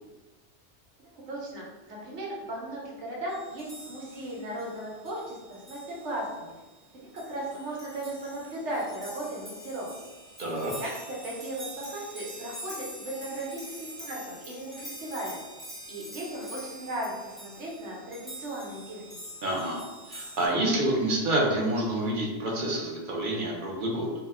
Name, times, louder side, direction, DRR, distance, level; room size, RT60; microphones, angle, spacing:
voice 1, 1.0-6.5 6.9-9.9 10.7-15.4 15.9-19.0, right 1 dB, 75° right, -4 dB, 1.1 m, -36 dB
sound 1, 3.3-20.5, right 1 dB, ahead, 0.5 m, -45 dB
voice 2, 10.4-10.7 19.4-19.8 20.1-24.1, right 1 dB, 50° right, -2 dB, 0.8 m, -28 dB
2.7 x 2.1 x 3.4 m, 1.2 s
omnidirectional pair, 1.2 m